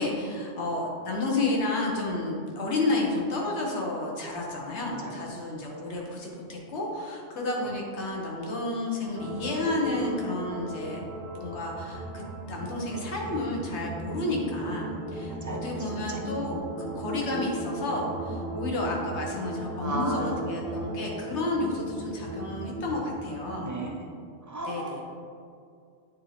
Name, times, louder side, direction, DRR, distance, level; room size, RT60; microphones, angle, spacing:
voice 1, 0.0-11.0 11.3-12.2 12.5-23.7 24.6-25.0, left 2 dB, 80° left, -1 dB, 1.3 m, -31 dB
sound 1, 9.1-23.9, right 1 dB, 60° right, 1.1 m, -37 dB
voice 2, 15.3-15.6 15.9-16.2 19.8-20.9 23.5-24.1 24.5-25.0, right 1 dB, 25° right, 0 dB, 0.4 m, -35 dB
8.3 x 2.8 x 4.2 m, 2.3 s
omnidirectional pair, 1.1 m